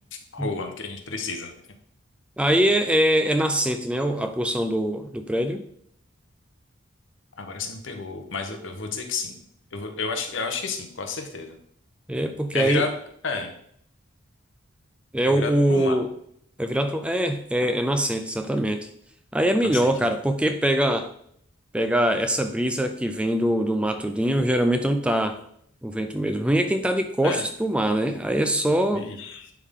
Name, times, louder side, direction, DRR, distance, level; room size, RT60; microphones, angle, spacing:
voice 1, 0.3-1.5 7.4-9.4 9.7-11.6 12.5-12.9 13.2-13.5 15.2-16.0 19.7-20.1 27.2-27.5 28.9-29.5, left 4 dB, 70° left, 5 dB, 1.0 m, -31 dB
voice 2, 2.4-5.6 12.1-12.9 15.1-16.1 16.6-18.9 19.3-21.1 21.7-25.4 25.8-29.1, right 1 dB, 5° right, 7 dB, 0.3 m, -23 dB
10.5 x 3.7 x 3.6 m, 0.67 s
head